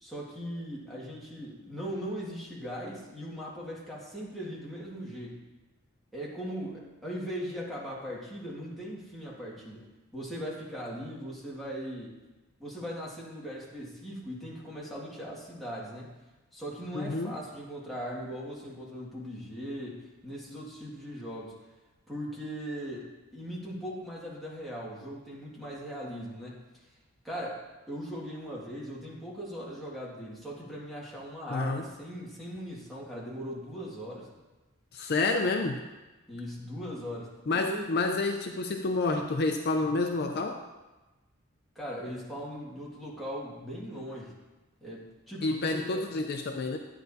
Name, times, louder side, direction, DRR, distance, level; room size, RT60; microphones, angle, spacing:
voice 1, 0.0-5.5 6.1-9.9 10.1-12.2 12.6-16.2 16.5-21.5 22.1-26.7 27.2-34.3 36.3-37.9 41.8-44.4 44.8-46.0, equal, ahead, -6 dB, 1.9 m, -39 dB
voice 2, 16.9-17.3 31.5-31.8 34.9-35.8 37.5-40.6 45.4-46.8, left 3 dB, 50° left, 4 dB, 0.5 m, -29 dB
11.5 x 9.1 x 2.7 m, 1.1 s
head